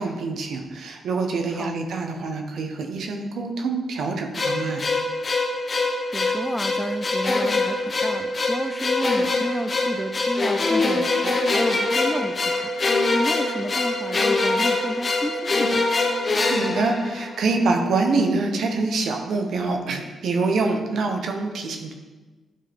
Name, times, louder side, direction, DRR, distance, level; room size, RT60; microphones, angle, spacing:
voice 1, 0.0-4.8 16.5-21.9, right 3 dB, 75° right, 3 dB, 1.0 m, -25 dB
sound 1, 4.3-17.6, left 2 dB, 40° left, 1.0 m, -24 dB
voice 2, 6.1-12.7 13.1-15.8, equal, ahead, 8 dB, 0.4 m, -31 dB
10.5 x 4.6 x 3.6 m, 1.2 s
cardioid pair, 70°, 0 cm